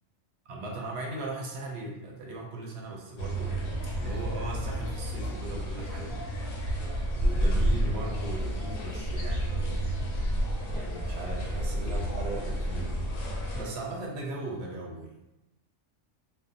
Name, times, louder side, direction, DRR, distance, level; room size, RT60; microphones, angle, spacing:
voice 1, 0.5-6.2 7.2-9.9 10.7-12.9 13.5-15.1, right 2 dB, 65° right, -1 dB, 0.7 m, -38 dB
sound 1, 3.2-13.6, right 1 dB, 80° left, 0.9 m, -30 dB
2.5 x 2.0 x 2.5 m, 0.94 s
omnidirectional pair, 1.3 m